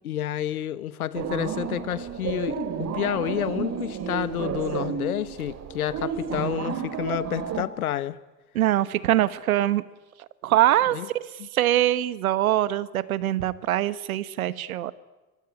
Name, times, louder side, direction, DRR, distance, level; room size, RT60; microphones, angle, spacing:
voice 1, 0.0-8.2 10.9-11.1 11.4-11.5, left 12 dB, 65° left, 17 dB, 1.3 m, -30 dB
sound 1, 1.1-7.6, right 6 dB, 35° right, 2.8 m, -31 dB
voice 2, 8.5-9.8 10.4-11.2 11.5-14.9, right 13 dB, 65° right, 18 dB, 1.2 m, -23 dB
24.5 x 23.0 x 9.6 m, 1.2 s
figure-of-eight pair, 75°, 46 cm